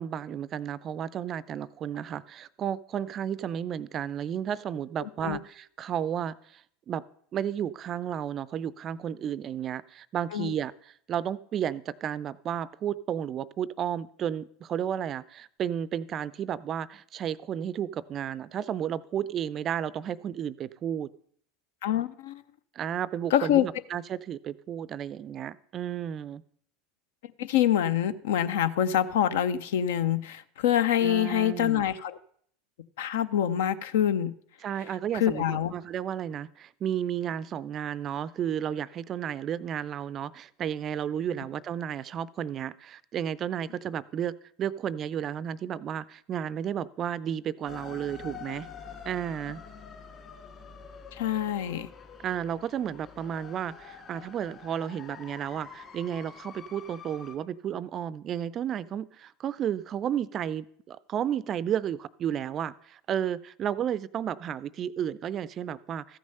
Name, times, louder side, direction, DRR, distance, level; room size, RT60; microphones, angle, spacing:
voice 1, 0.0-7.0 7.3-21.1 22.7-26.4 31.0-31.8 34.6-48.7 49.1-49.6 52.2-66.2, right 9 dB, 40° right, 0.4 m, -32 dB
voice 2, 5.0-5.4 10.3-10.5 21.8-22.4 23.3-23.7 27.4-32.2 33.0-34.3 35.1-35.7 51.1-51.9, left 10 dB, 65° left, 0.5 m, -26 dB
sound 1, 47.6-57.4, left 6 dB, 35° left, 2.6 m, -47 dB
14.0 x 6.3 x 5.3 m
figure-of-eight pair, 75°, 0 cm